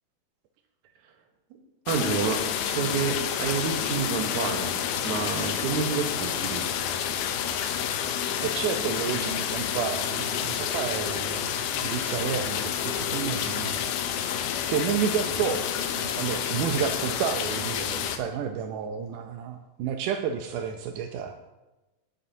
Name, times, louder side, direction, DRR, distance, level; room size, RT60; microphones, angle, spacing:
sound 1, 1.9-18.2, left 9 dB, 80° left, 2.6 m, -29 dB
voice 1, 1.9-6.6, right 6 dB, 65° right, 4 dB, 2.2 m, -29 dB
voice 2, 8.4-13.9 14.7-21.4, right 8 dB, 80° right, 5 dB, 1.9 m, -31 dB
20.0 x 8.4 x 2.7 m, 1.1 s
omnidirectional pair, 4.3 m